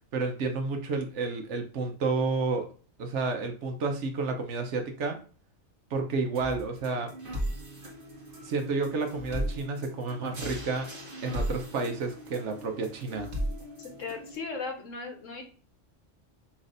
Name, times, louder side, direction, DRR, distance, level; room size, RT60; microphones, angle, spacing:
voice 1, 0.1-2.7 3.0-5.2 5.9-7.1 8.4-10.9 11.2-13.3, right 4 dB, 70° right, 5 dB, 1.1 m, -30 dB
sound 1, 6.3-14.3, equal, 45° right, 1.4 m, -37 dB
voice 2, 13.8-15.4, left 4 dB, 85° left, 3 dB, 1.4 m, -37 dB
5.8 x 3.2 x 2.5 m, 0.38 s
omnidirectional pair, 1.3 m